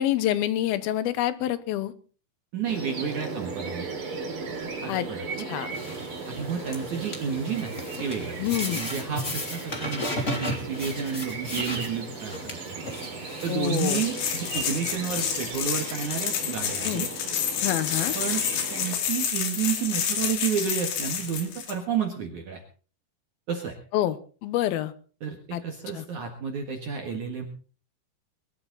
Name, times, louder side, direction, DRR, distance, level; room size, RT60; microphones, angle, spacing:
voice 1, 0.0-1.9 4.9-5.1 5.5-5.7 8.4-8.8 13.5-14.0 16.8-17.0 17.6-18.2 23.9-24.2 24.4-24.9 25.5-25.6 25.9-26.1, left 13 dB, 75° left, 15 dB, 2.6 m, -27 dB
voice 2, 2.5-3.9 4.8-5.5 6.3-8.4 8.7-12.3 12.7-12.8 13.4-17.1 18.1-18.4 18.7-22.6 23.5-23.8 25.2-27.4, right 7 dB, 55° right, 2 dB, 2.6 m, -31 dB
sound 1, 2.7-18.9, right 4 dB, 35° right, 3.0 m, -37 dB
sound 2, 5.7-15.5, left 1 dB, 20° left, 2.7 m, -36 dB
sound 3, 13.6-21.7, left 8 dB, 90° left, 4.6 m, -29 dB
22.5 x 12.5 x 4.0 m, 0.39 s
omnidirectional pair, 5.0 m